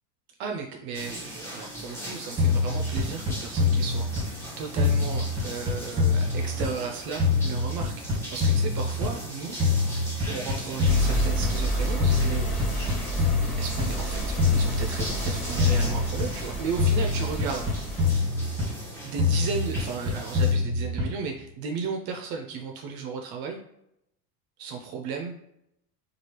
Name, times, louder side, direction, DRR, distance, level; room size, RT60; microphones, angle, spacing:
voice 1, 0.4-9.6 10.3-12.5 13.6-17.7 19.0-23.6 24.6-25.4, right 5 dB, 55° right, 2 dB, 0.5 m, -35 dB
sound 1, 0.9-20.5, equal, 5° left, 0.9 m, -40 dB
sound 2, 2.4-4.5 4.8-6.9 7.2-9.3 9.6-11.7 12.0-14.0 14.4-16.5 16.8-18.9 19.2-21.3, left 3 dB, 10° right, 1.4 m, -25 dB
sound 3, 10.8-18.2, right 1 dB, 40° left, 1.1 m, -31 dB
3.1 x 2.4 x 2.9 m, 0.79 s
supercardioid pair, 120°, 45 cm